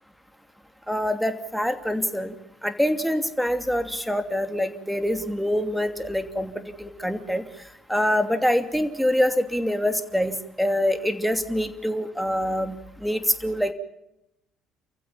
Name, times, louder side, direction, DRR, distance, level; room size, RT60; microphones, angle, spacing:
voice 1, 0.9-2.3 2.6-7.4 7.9-13.7, equal, ahead, 7 dB, 2.8 m, -25 dB
29.5 x 15.5 x 8.7 m, 0.87 s
hypercardioid pair, 60°, 0 cm